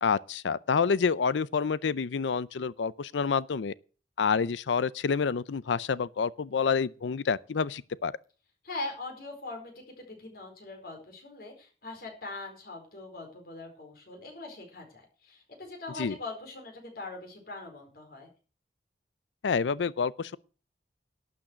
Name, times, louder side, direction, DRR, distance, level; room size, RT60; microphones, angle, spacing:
voice 1, 0.0-3.7 4.2-8.1 16.0-16.1 19.4-20.4, left 5 dB, 85° left, 0.5 m, -28 dB
voice 2, 8.6-18.3, left 2 dB, 55° left, 4.5 m, -42 dB
12.0 x 6.3 x 7.9 m
head